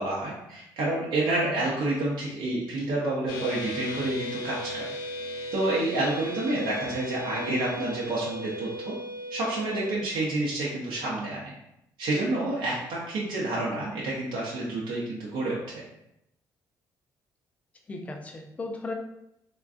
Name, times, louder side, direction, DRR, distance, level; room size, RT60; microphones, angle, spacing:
voice 1, 0.0-4.8 5.5-8.9 9.3-11.5 12.0-15.6, right 2 dB, 80° right, -5 dB, 0.6 m, -29 dB
sound 1, 3.3-10.0, equal, 65° left, 0.7 m, -36 dB
voice 2, 17.9-18.9, left 2 dB, 20° left, 2 dB, 0.3 m, -36 dB
3.5 x 2.2 x 2.4 m, 0.83 s
cardioid pair, 170°, 8 cm